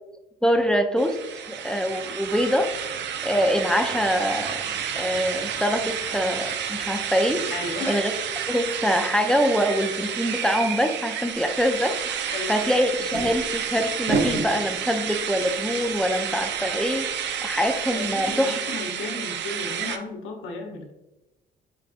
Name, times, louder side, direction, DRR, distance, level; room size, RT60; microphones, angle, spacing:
voice 1, 0.4-1.2 1.5-2.7 3.2-4.6 4.9-8.1 8.5-12.0 12.5-18.6, equal, 5° left, 6 dB, 0.3 m, -24 dB
sound 1, 1.0-20.0, right 8 dB, 65° right, 0.4 m, -30 dB
voice 2, 7.5-8.0 12.3-12.7 17.9-20.9, left 3 dB, 85° left, 2 dB, 0.8 m, -34 dB
sound 2, 11.6-11.7 12.9-17.5 17.7-17.8 18.2-18.3, right 3 dB, 85° right, 0.8 m, -32 dB
5.3 x 2.5 x 2.4 m, 1.0 s
cardioid pair, 90°, 20 cm